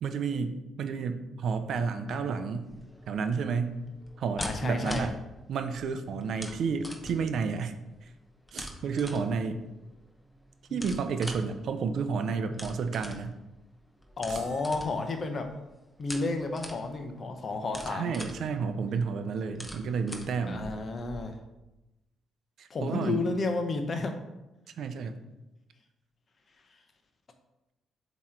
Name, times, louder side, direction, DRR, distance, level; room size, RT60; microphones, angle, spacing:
voice 1, 0.0-2.7 3.1-3.8 4.2-5.1 5.5-7.7 8.5-9.6 10.7-13.4 17.9-20.6 22.6-23.2 24.8-25.1, right 5 dB, 65° right, 9 dB, 0.5 m, -31 dB
sound 1, 2.6-21.2, equal, 10° left, 0.9 m, -44 dB
voice 2, 4.4-5.1 10.7-10.8 14.2-15.5 16.0-18.2 20.5-21.4 22.7-24.2, left 3 dB, 40° left, 6 dB, 0.8 m, -31 dB
sound 2, 14.3-15.8, right 5 dB, 90° right, 0.8 m, -52 dB
7.3 x 3.0 x 4.4 m, 0.99 s
cardioid pair, 90°, 0 cm